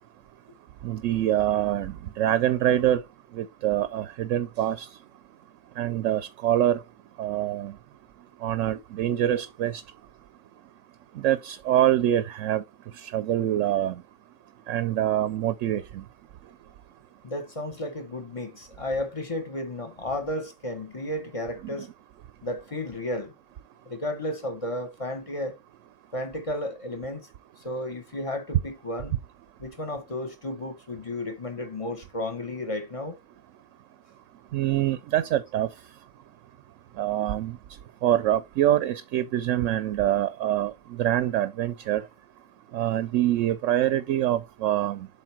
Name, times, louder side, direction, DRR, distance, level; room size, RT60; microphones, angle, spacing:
voice 1, 0.8-3.0 3.4-4.9 5.8-6.8 7.2-7.7 8.4-9.8 11.2-12.6 13.0-13.9 14.7-16.0 34.5-35.7 37.0-37.5 38.0-40.7 41.0-42.0 42.7-45.1, right 12 dB, 75° right, 0.9 m, -25 dB
voice 2, 17.2-21.9 22.4-23.3 23.8-25.6 26.1-27.3 27.6-29.1 29.6-33.2, left 1 dB, 25° left, 1.3 m, -33 dB
7.5 x 3.6 x 4.5 m
omnidirectional pair, 1.3 m